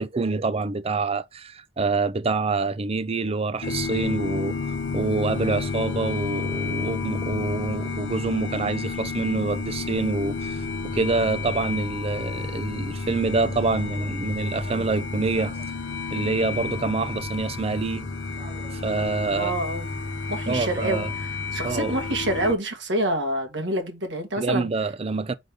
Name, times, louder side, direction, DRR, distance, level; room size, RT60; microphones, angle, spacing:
voice 1, 0.0-15.6 16.1-18.1 18.4-19.5 20.5-21.1 21.6-22.0 24.4-25.3, right 3 dB, 35° right, 0.5 m, -26 dB
sound 1, 3.6-22.5, left 4 dB, 85° left, 1.0 m, -31 dB
voice 2, 19.3-19.9 20.3-24.7, right 1 dB, 80° right, 1.9 m, -27 dB
5.2 x 4.1 x 4.7 m
head